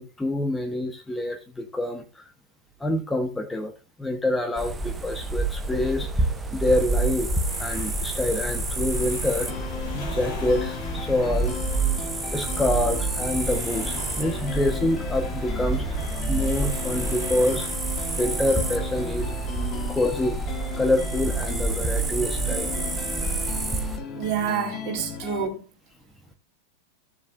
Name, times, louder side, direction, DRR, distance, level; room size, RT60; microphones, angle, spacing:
voice 1, 0.0-2.2 2.8-3.7 4.0-6.3 6.5-9.5 9.9-11.6 12.3-16.0 16.3-17.7 18.2-19.3 19.9-20.4 20.8-23.0 23.6-23.8, left 1 dB, 10° left, 1.2 m, -26 dB
sound 1, 4.6-24.0, right 3 dB, 10° right, 1.4 m, -28 dB
sound 2, 7.5-19.5, left 2 dB, 50° left, 4.6 m, -39 dB
sound 3, 9.5-25.5, left 6 dB, 30° left, 1.5 m, -37 dB
voice 2, 24.1-25.6, right 7 dB, 40° right, 3.8 m, -28 dB
16.0 x 7.2 x 2.7 m
figure-of-eight pair, 90°, 0 cm